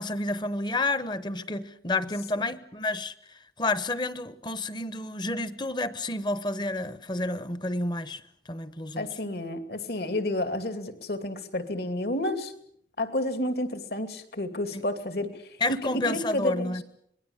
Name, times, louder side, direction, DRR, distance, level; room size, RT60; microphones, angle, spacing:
voice 1, 0.0-8.2 8.5-9.1 14.7-14.8 15.6-16.8, left 2 dB, 25° left, 15 dB, 1.0 m, -30 dB
voice 2, 9.0-12.5 13.0-15.3 15.7-16.7, left 1 dB, 65° left, 9 dB, 2.6 m, -30 dB
26.0 x 20.5 x 7.3 m, 0.69 s
head